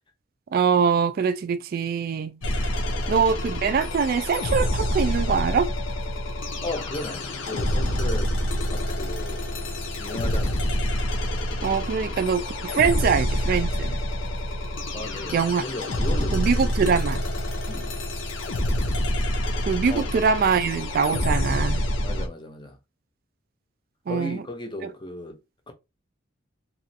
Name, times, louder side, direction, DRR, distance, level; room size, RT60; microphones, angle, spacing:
voice 1, 0.5-2.3 3.1-5.7 11.6-14.0 15.3-15.6 16.3-17.2 19.7-21.8 24.1-24.4 24.8-24.9, right 6 dB, 50° right, 0.3 m, -23 dB
sound 1, 2.4-22.3, left 1 dB, 75° left, 0.7 m, -27 dB
voice 2, 2.5-3.2 6.6-8.3 8.7-9.4 10.0-10.6 14.9-16.5 17.7-17.9 19.9-20.0 22.0-22.8 24.1-25.4 25.7-25.8, left 1 dB, 25° left, 0.6 m, -36 dB
3.0 x 2.5 x 2.6 m
head